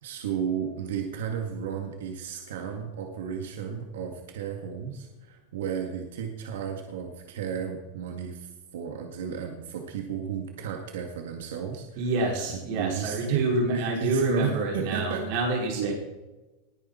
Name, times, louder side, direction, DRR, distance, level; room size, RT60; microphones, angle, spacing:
voice 1, 0.0-12.1 12.5-13.4 13.7-15.3 15.7-15.9, right 7 dB, 85° right, 3 dB, 2.0 m, -33 dB
voice 2, 11.9-15.9, right 2 dB, 45° right, -1 dB, 4.8 m, -27 dB
20.0 x 10.0 x 4.4 m, 1.1 s
supercardioid pair, 180°, 0 cm